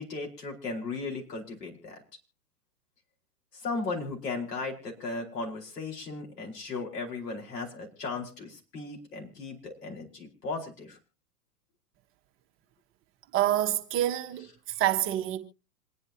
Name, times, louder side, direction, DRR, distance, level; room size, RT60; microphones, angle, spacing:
voice 1, 0.0-2.0 3.5-11.0, left 3 dB, 80° left, 4.9 m, -36 dB
voice 2, 13.3-14.5 14.8-15.4, right 13 dB, 25° right, 1.4 m, -26 dB
27.0 x 9.6 x 2.9 m
hypercardioid pair, 120°, 47 cm